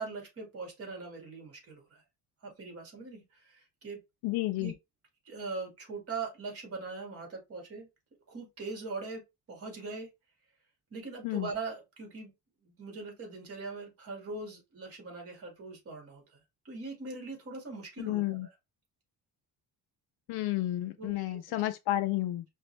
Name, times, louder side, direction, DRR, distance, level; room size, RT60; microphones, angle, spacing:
voice 1, 0.0-2.0 2.4-4.0 4.6-4.7 5.3-7.9 8.3-9.2 9.5-10.1 10.9-12.3 12.6-16.2 16.7-18.5 21.0-21.6, right 3 dB, 40° right, 1.8 m, -41 dB
voice 2, 4.2-4.7 11.2-11.5 18.0-18.5 20.3-22.4, left 16 dB, 80° left, 0.5 m, -31 dB
5.0 x 2.4 x 3.2 m
cardioid pair, 160°, 37 cm